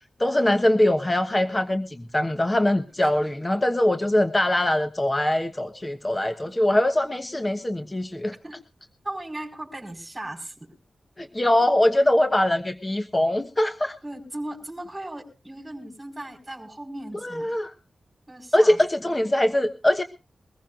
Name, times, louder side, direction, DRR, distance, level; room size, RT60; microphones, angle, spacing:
voice 1, 0.2-8.3 11.2-13.9 17.2-17.7 18.5-20.0, left 1 dB, 25° left, 8 dB, 1.1 m, -22 dB
voice 2, 9.0-10.7 11.6-11.7 14.0-17.6 18.3-18.8, right 1 dB, 20° right, 1 dB, 4.5 m, -37 dB
22.5 x 14.5 x 2.5 m, 0.30 s
cardioid pair, 55°, 0 cm